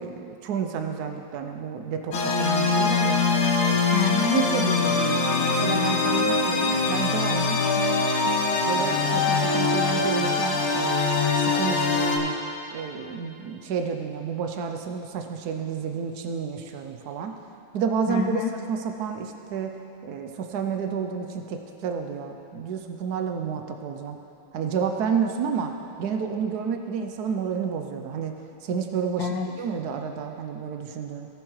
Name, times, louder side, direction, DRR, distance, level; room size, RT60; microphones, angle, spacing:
voice 1, 0.0-3.2 3.7-3.9 4.2-7.6 8.6-12.4 12.7-17.3 17.7-18.4 18.7-19.7 20.0-24.2 24.5-25.7 26.0-28.3 28.6-31.3, right 6 dB, 85° right, 5 dB, 0.8 m, -30 dB
sound 1, 2.1-12.2, left 4 dB, 60° left, 1.4 m, -23 dB
voice 2, 3.9-4.4 7.8-8.7 18.1-18.5 29.2-29.5, left 6 dB, 75° left, 2 dB, 1.1 m, -29 dB
17.5 x 7.1 x 3.2 m, 2.8 s
omnidirectional pair, 2.4 m